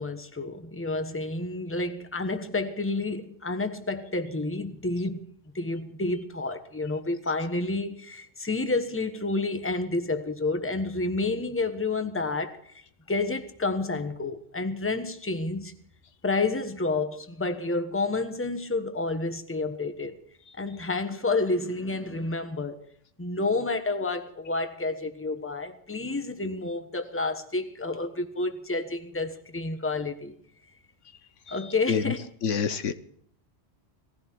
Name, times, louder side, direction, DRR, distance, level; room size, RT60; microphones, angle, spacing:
voice 1, 0.0-12.8 13.1-15.8 16.2-20.2 20.6-22.8 23.2-30.3 31.5-32.3, left 3 dB, 10° left, 1.1 m, -30 dB
voice 2, 32.4-32.9, left 6 dB, 80° left, 1.2 m, -26 dB
18.5 x 15.0 x 4.6 m
omnidirectional pair, 1.2 m